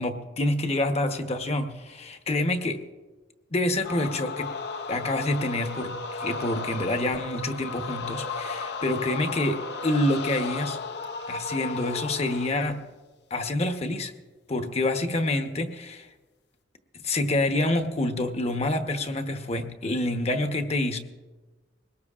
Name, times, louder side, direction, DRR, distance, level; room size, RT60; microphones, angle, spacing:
voice 1, 0.0-2.8 3.5-4.6 4.9-10.8 11.3-12.8 13.3-14.1 14.5-16.1 17.0-21.0, left 1 dB, 35° left, 6 dB, 1.0 m, -27 dB
sound 1, 3.8-12.7, left 4 dB, 65° left, 0.7 m, -34 dB
21.5 x 18.5 x 2.4 m, 1.3 s
head